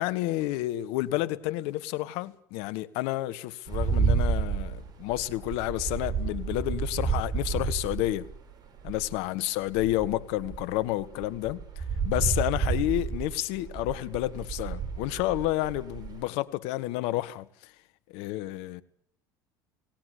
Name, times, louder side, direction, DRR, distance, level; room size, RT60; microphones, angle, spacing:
voice 1, 0.0-8.3 8.8-17.7 18.1-18.8, left 16 dB, 65° left, 1.6 m, -30 dB
sound 1, 3.7-9.2 9.7-16.2, right 5 dB, 40° right, 5.8 m, -31 dB
29.0 x 18.0 x 8.4 m
hypercardioid pair, 80°, 10 cm